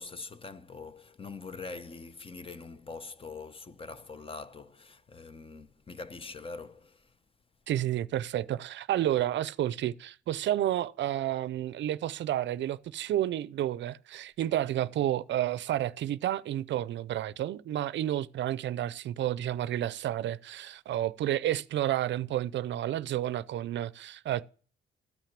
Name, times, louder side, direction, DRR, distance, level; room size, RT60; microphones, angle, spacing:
voice 1, 0.0-7.1, left 4 dB, 25° left, 0.8 m, -44 dB
voice 2, 7.7-24.5, right 12 dB, 65° right, 0.5 m, -30 dB
13.5 x 5.8 x 7.4 m
cardioid pair, 90°, 20 cm